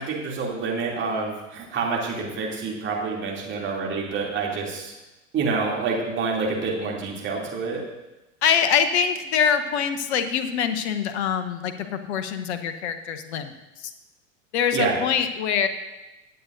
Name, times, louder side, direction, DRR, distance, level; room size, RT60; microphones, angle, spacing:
voice 1, 0.0-4.9 5.3-7.8 14.7-15.0, right 4 dB, 30° right, -3 dB, 2.9 m, -27 dB
voice 2, 8.4-13.5 13.8-13.9 14.5-15.7, left 7 dB, 55° left, 9 dB, 0.9 m, -24 dB
20.5 x 7.9 x 2.7 m, 1.0 s
figure-of-eight pair, 80°, 39 cm